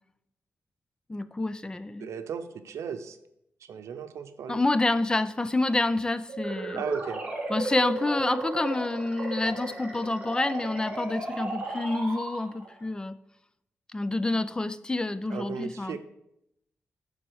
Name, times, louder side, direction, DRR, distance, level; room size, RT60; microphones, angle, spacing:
voice 1, 1.1-2.1 4.5-6.8 7.5-13.2 13.9-16.0, left 2 dB, 15° left, 13 dB, 0.3 m, -28 dB
voice 2, 2.0-3.2 3.6-4.6 6.7-7.2 15.3-16.0, right 7 dB, 90° right, 10 dB, 0.6 m, -36 dB
sound 1, 6.3-12.8, right 2 dB, 25° right, 1.6 m, -34 dB
11.5 x 4.3 x 4.7 m, 0.82 s
wide cardioid pair, 135°, 5 cm